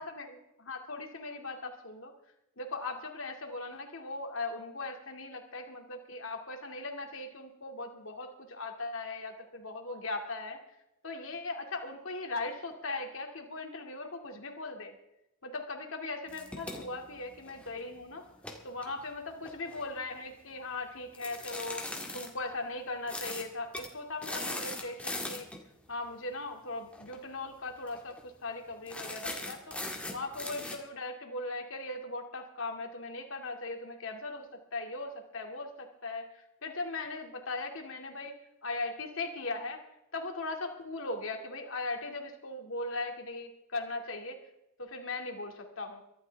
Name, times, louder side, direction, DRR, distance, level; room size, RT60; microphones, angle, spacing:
voice 1, 0.0-2.1 2.6-10.6 11.0-14.9 15.4-18.3 18.6-21.8 22.1-25.5 25.9-29.8 30.1-38.3 38.6-39.8 40.1-44.4 44.8-46.0, left 2 dB, 70° left, 4 dB, 2.4 m, -39 dB
sound 1, 16.3-17.8 18.3-19.9 21.1-22.3 23.1-23.5 23.7-23.9 24.2-25.6 26.9-27.2 27.5-27.6 27.9-28.2 28.9-30.8, left 2 dB, 5° left, 1.8 m, -40 dB
24.0 x 12.0 x 3.5 m, 0.85 s
head